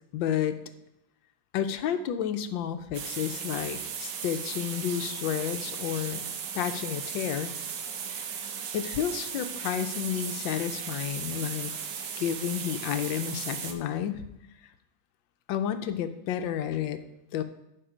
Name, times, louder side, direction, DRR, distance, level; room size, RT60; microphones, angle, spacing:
voice 1, 0.1-0.6 1.5-6.3 6.5-7.5 8.7-11.7 12.2-14.3 15.5-17.0 17.3-17.4, left 9 dB, 80° left, 9 dB, 1.4 m, -31 dB
sound 1, 2.9-13.7, right 7 dB, 70° right, 1.4 m, -36 dB
11.0 x 4.8 x 5.0 m, 0.86 s
omnidirectional pair, 2.0 m